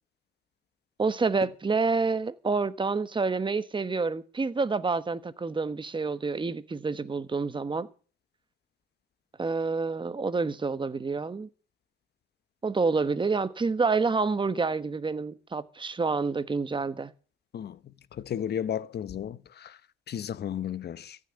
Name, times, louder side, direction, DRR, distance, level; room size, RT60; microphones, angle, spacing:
voice 1, 1.0-7.9 9.4-11.5 12.6-17.1, right 4 dB, 25° right, 1.2 m, -28 dB
voice 2, 18.1-19.8 20.1-21.2, left 9 dB, 55° left, 0.9 m, -33 dB
15.0 x 6.7 x 9.7 m
cardioid pair, 90°, 20 cm